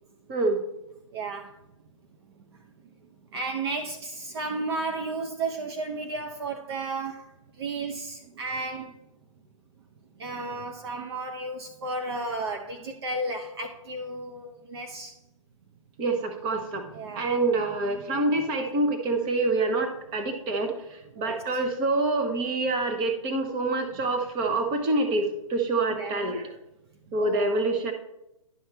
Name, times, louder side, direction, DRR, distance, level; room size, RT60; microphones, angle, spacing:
voice 1, 0.3-0.6 16.0-16.9 17.1-26.5 27.1-27.9, right 2 dB, 25° right, 5 dB, 1.1 m, -26 dB
voice 2, 1.1-1.6 3.3-9.0 10.2-15.1 16.9-17.3 21.2-21.4 25.9-26.3 27.2-27.5, right 3 dB, 50° right, 5 dB, 0.8 m, -33 dB
11.0 x 5.6 x 3.4 m, 0.87 s
hypercardioid pair, 140°, 17 cm